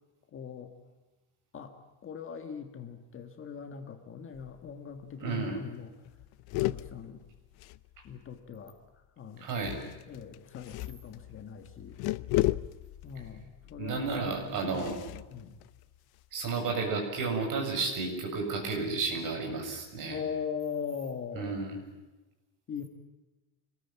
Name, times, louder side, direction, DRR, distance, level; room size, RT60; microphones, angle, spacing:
voice 1, 0.3-0.7 1.5-1.8 2.0-5.9 6.6-7.2 8.0-8.8 9.2-9.8 10.1-12.0 13.0-14.2 14.5-15.6 20.1-21.7 22.7-22.8, left 6 dB, 25° left, 6 dB, 1.6 m, -40 dB
sound 1, 4.3-4.8 5.1-5.2 5.5-5.7 6.0-8.4 9.5-16.4, left 17 dB, 50° left, 0.8 m, -36 dB
voice 2, 5.2-5.6 9.4-9.8 13.8-15.0 16.3-20.2 21.3-21.7, right 4 dB, 40° right, 2 dB, 7.5 m, -32 dB
26.0 x 20.5 x 8.9 m, 1.1 s
cardioid pair, 180°, 47 cm